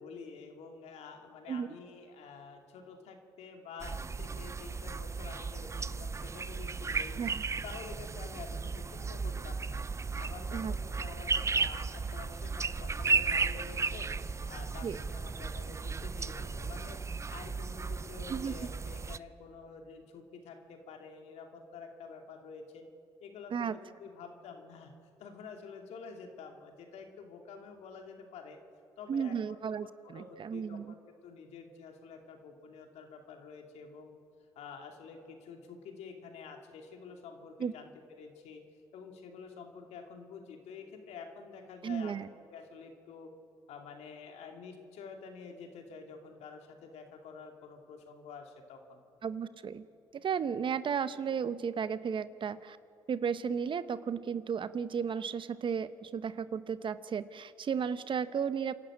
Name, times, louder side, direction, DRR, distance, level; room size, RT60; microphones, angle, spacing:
voice 1, 0.0-7.2 7.6-9.8 10.1-14.1 14.5-17.0 17.3-22.8 23.2-24.9 25.2-28.6 29.0-29.4 30.0-34.2 34.6-37.9 38.2-38.6 38.9-42.1 42.5-43.3 43.7-49.0, left 5 dB, 75° left, 3 dB, 2.7 m, -48 dB
sound 1, 3.8-19.2, right 4 dB, 25° right, 0.6 m, -35 dB
voice 2, 29.1-30.9 37.6-37.7 41.8-42.3 49.2-49.9 50.1-52.8 53.1-58.7, right 7 dB, 45° right, 14 dB, 0.9 m, -34 dB
27.5 x 11.5 x 8.6 m, 2.6 s
supercardioid pair, 65°, 11 cm